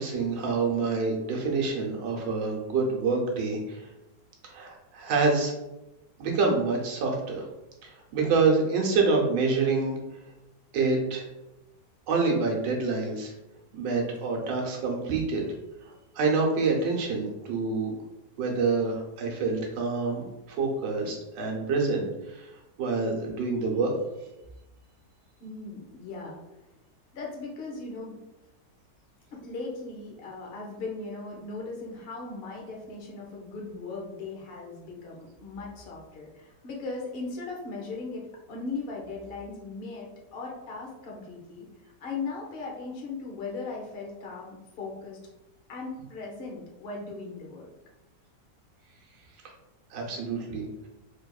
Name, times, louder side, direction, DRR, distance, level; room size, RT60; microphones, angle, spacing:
voice 1, 0.0-3.9 4.4-5.5 6.2-7.5 7.8-10.0 10.7-11.2 12.1-13.3 13.7-15.4 15.8-17.9 18.4-23.9 49.9-50.9, right 4 dB, 80° right, 0 dB, 1.4 m, -27 dB
voice 2, 25.4-26.4 27.1-28.2 29.3-38.2 38.5-45.2 45.7-47.7, left 3 dB, 50° left, -1 dB, 0.7 m, -38 dB
3.4 x 3.4 x 2.3 m, 0.97 s
omnidirectional pair, 1.9 m